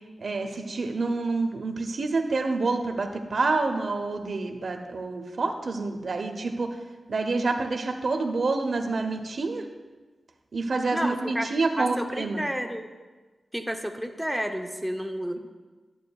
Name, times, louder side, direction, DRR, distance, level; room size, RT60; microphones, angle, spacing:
voice 1, 0.2-6.8 7.1-9.7 10.5-12.4, right 3 dB, 60° right, 5 dB, 0.8 m, -28 dB
voice 2, 10.9-12.9 13.5-15.4, equal, ahead, 4 dB, 0.7 m, -31 dB
11.0 x 7.5 x 2.3 m, 1.3 s
wide cardioid pair, 90°, 0 cm